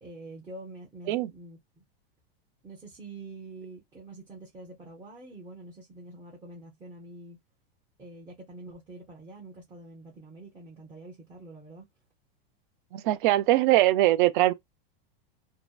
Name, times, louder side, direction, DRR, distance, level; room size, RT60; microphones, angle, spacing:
voice 1, 0.0-1.8 2.6-7.4 8.0-11.8, right 2 dB, 15° right, 0.6 m, -46 dB
voice 2, 12.9-14.5, right 15 dB, 55° right, 0.5 m, -22 dB
2.7 x 2.1 x 2.2 m
supercardioid pair, 155°, 30 cm